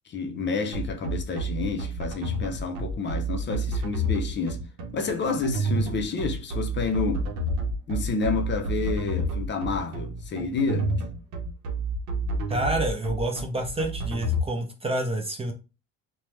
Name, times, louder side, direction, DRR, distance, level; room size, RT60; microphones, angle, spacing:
voice 1, 0.1-4.6 4.9-7.3 7.9-11.0, left 4 dB, 40° left, 0.6 m, -29 dB
sound 1, 0.7-14.4, right 2 dB, 70° right, 0.8 m, -29 dB
voice 2, 12.5-15.5, right 1 dB, 20° right, 0.5 m, -28 dB
3.2 x 2.2 x 3.0 m
cardioid pair, 115°, 30 cm